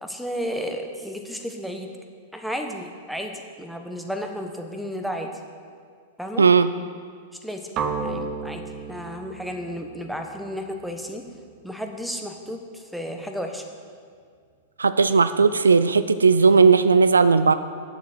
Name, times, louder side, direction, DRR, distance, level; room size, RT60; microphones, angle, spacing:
voice 1, 0.0-1.9 2.3-5.3 6.2-6.5 7.4-7.7 8.0-8.6 8.9-11.2 11.6-13.6, equal, ahead, 4 dB, 1.1 m, -33 dB
voice 2, 6.4-6.7 14.8-17.5, right 5 dB, 80° right, 12 dB, 0.3 m, -16 dB
sound 1, 7.8-11.7, right 4 dB, 35° right, 0.8 m, -33 dB
9.6 x 7.3 x 6.4 m, 2.1 s
figure-of-eight pair, 100°, 0 cm